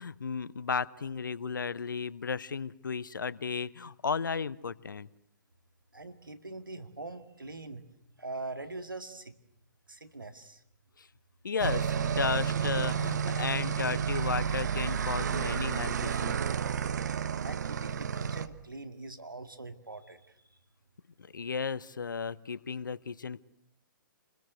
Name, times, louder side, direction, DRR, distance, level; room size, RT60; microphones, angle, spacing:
voice 1, 0.0-5.1 11.0-11.1 11.4-16.4 21.3-23.4, left 5 dB, 70° left, 20 dB, 0.9 m, -34 dB
voice 2, 5.9-7.8 8.2-9.3 9.9-10.6 17.4-20.4, right 2 dB, 85° right, 8 dB, 2.2 m, -42 dB
sound 1, 11.6-18.5, right 7 dB, 60° right, 1.3 m, -31 dB
28.0 x 21.0 x 8.2 m, 0.77 s
figure-of-eight pair, 125°, 11 cm